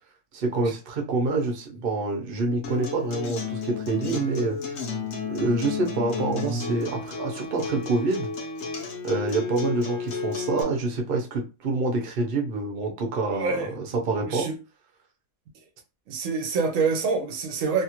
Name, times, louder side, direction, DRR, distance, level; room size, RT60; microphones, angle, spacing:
voice 1, 0.3-4.6 5.3-8.3 9.0-14.5, right 3 dB, 50° right, 0.8 m, -27 dB
Acoustic guitar, 2.6-10.6, left 5 dB, 60° left, 1.0 m, -32 dB
voice 2, 13.3-13.7 14.3-14.5 16.1-17.8, right 4 dB, 75° right, 1.0 m, -26 dB
2.7 x 2.4 x 2.9 m
omnidirectional pair, 1.4 m